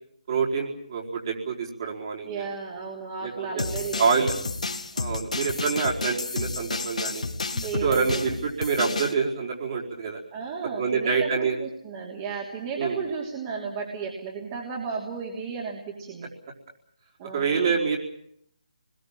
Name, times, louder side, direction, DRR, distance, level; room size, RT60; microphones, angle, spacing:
voice 1, 0.3-2.5 3.2-4.3 5.0-7.3 7.8-10.2 10.8-11.6 12.8-13.0 17.2-18.0, right 5 dB, 40° right, -1 dB, 4.7 m, -26 dB
voice 2, 2.2-4.4 7.5-8.2 10.3-16.3 17.2-17.7, right 5 dB, 25° right, -1 dB, 3.0 m, -34 dB
sound 1, 3.6-9.1, left 3 dB, 75° left, 2.3 m, -31 dB
25.5 x 21.0 x 7.5 m, 0.71 s
figure-of-eight pair, 150°, 4 cm